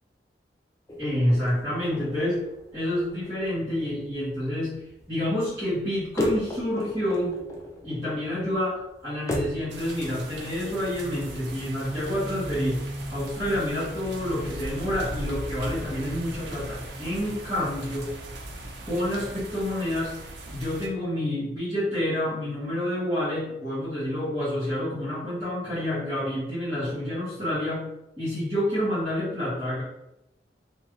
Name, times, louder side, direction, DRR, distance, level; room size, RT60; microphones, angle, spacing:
sound 1, 0.9-9.7, left 1 dB, 15° left, 0.4 m, -36 dB
voice 1, 1.0-2.4 2.7-4.7 5.1-7.3 7.8-12.8 13.1-18.1 18.9-20.1 20.5-27.9 28.2-29.8, left 1 dB, 20° right, -14 dB, 1.3 m, -28 dB
sound 2, 9.7-20.9, right 1 dB, 80° right, 0.5 m, -37 dB
2.9 x 2.4 x 3.0 m, 0.86 s
head